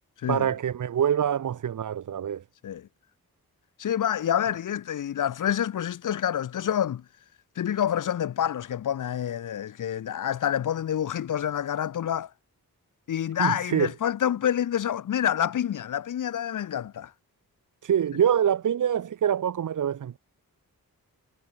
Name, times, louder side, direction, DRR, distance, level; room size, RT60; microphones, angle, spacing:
voice 1, 0.3-2.4 13.4-13.9 17.8-20.2, right 9 dB, 55° right, 0.6 m, -25 dB
voice 2, 3.8-7.0 7.6-12.3 13.1-17.1, left 10 dB, 60° left, 0.5 m, -27 dB
wide cardioid pair, 105°, 36 cm